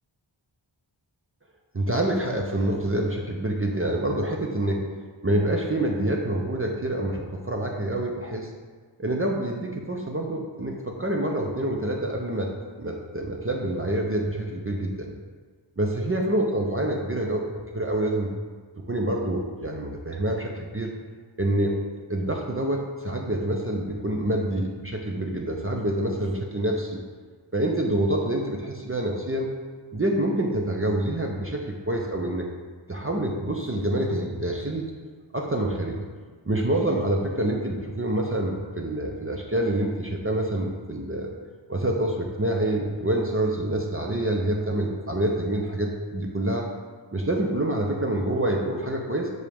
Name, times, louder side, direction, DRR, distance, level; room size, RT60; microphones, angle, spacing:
voice 1, 1.7-4.8 5.2-8.5 9.0-12.5 12.8-15.1 15.8-18.3 18.9-20.9 21.4-21.8 22.1-27.0 27.5-29.5 29.9-32.5 32.9-34.8 35.3-36.0 36.5-41.3 41.7-46.6 47.1-49.3, right 1 dB, 25° right, 0 dB, 0.7 m, -26 dB
6.2 x 5.3 x 3.5 m, 1.5 s
wide cardioid pair, 40°, 48 cm